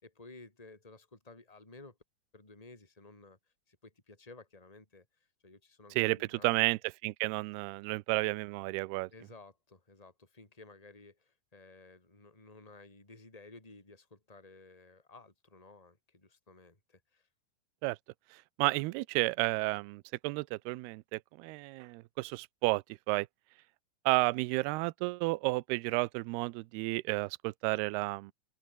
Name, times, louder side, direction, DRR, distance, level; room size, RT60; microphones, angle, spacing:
voice 1, 0.0-2.0 2.3-3.4 3.7-5.1 5.4-6.6 9.1-17.3, left 3 dB, 10° left, 4.4 m, -55 dB
voice 2, 6.0-9.1 17.8-18.0 18.3-23.3 24.1-28.3, right 23 dB, 80° right, 2.5 m, -32 dB
open air
omnidirectional pair, 4.9 m